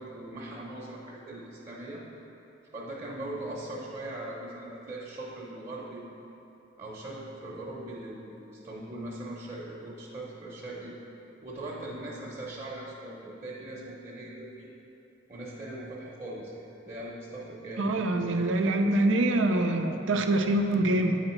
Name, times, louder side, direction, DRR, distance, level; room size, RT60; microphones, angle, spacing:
voice 1, 0.0-2.0 2.7-6.2 6.8-11.0 11.4-14.7 15.3-18.0, right 1 dB, 30° right, -5 dB, 0.9 m, -40 dB
voice 2, 17.8-21.2, right 1 dB, 90° right, 5 dB, 0.6 m, -25 dB
8.8 x 4.9 x 4.4 m, 3.0 s
head